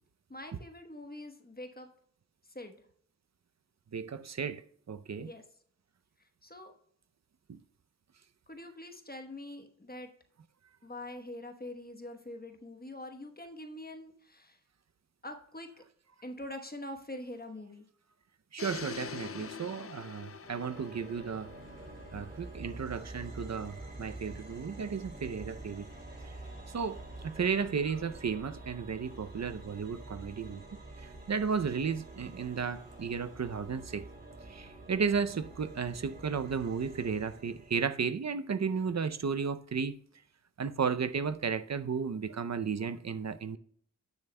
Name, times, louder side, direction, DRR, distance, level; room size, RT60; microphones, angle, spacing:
voice 1, 0.3-1.9 2.4-2.8 5.2-5.4 6.2-6.7 8.5-10.1 10.8-14.6 15.2-15.8 16.2-17.9, left 1 dB, 25° left, 1.1 m, -44 dB
voice 2, 3.9-5.3 7.5-7.6 18.5-21.5 22.1-25.9 26.2-26.3 26.7-30.6 31.0-34.1 34.5-40.0 40.6-43.6, right 6 dB, 50° right, 0.6 m, -34 dB
sound 1, 18.6-22.6, left 7 dB, 45° left, 0.4 m, -45 dB
sound 2, 20.4-37.9, right 2 dB, 30° right, 2.3 m, -47 dB
17.5 x 7.0 x 2.2 m
wide cardioid pair, 75°, 34 cm